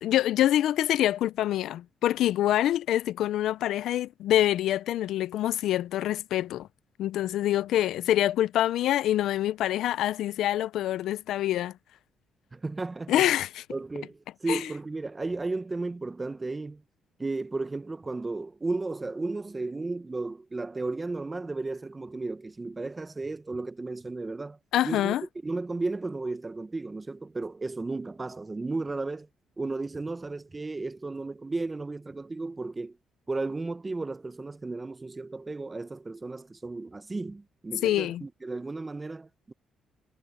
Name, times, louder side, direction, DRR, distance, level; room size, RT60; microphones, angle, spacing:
voice 1, 0.0-6.7 7.0-11.7 13.1-13.6 14.5-14.6 24.7-25.2 37.8-38.2, left 13 dB, 80° left, 0.4 m, -26 dB
voice 2, 12.5-13.3 13.7-16.8 17.2-24.6 24.8-25.1 25.4-29.3 29.6-33.0 33.3-39.5, right 3 dB, 20° right, 0.8 m, -34 dB
cardioid pair, 90°, 0 cm